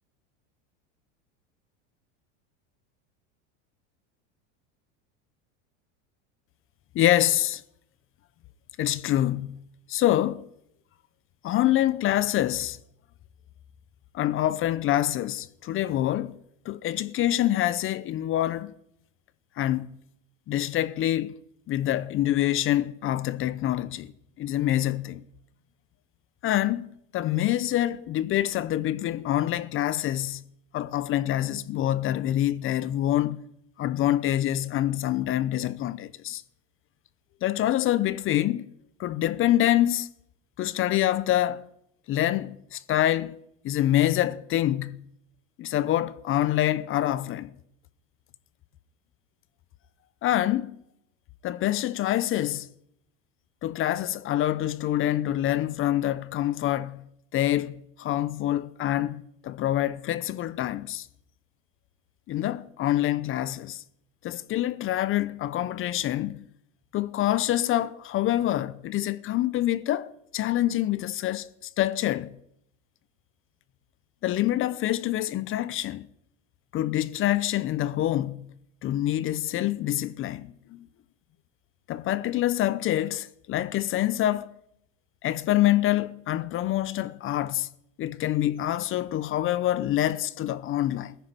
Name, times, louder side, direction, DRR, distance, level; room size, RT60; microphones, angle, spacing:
voice 1, 6.9-7.6 8.8-9.6 9.9-10.5 11.4-12.8 14.1-16.4 16.6-18.7 19.6-19.9 20.5-21.3 21.7-24.1 24.4-25.2 26.4-30.4 30.7-33.4 33.8-36.4 37.4-38.7 39.0-40.1 40.6-41.7 42.1-43.4 43.6-45.0 45.6-47.5 50.2-50.8 51.4-52.7 53.6-57.0 57.3-61.1 62.3-63.8 64.2-66.4 66.9-72.4 74.2-76.1 76.7-78.5 78.8-80.9 81.9-84.5 85.2-87.7 88.0-91.1, left 13 dB, 35° left, 0.7 m, -26 dB
15.0 x 10.5 x 8.9 m
supercardioid pair, 130°, 36 cm